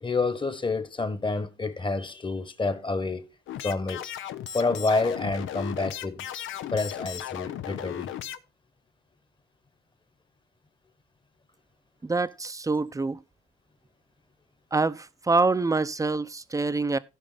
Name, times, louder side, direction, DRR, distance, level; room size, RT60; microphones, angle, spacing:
voice 1, 0.0-3.3 3.6-4.1 4.5-6.3 6.7-8.1, left 3 dB, 25° left, 1.4 m, -28 dB
sound 1, 3.5-8.4, left 11 dB, 80° left, 0.8 m, -36 dB
voice 2, 12.0-13.2 14.7-17.0, right 3 dB, 15° right, 0.7 m, -26 dB
15.5 x 5.2 x 4.1 m
cardioid pair, 90°, 20 cm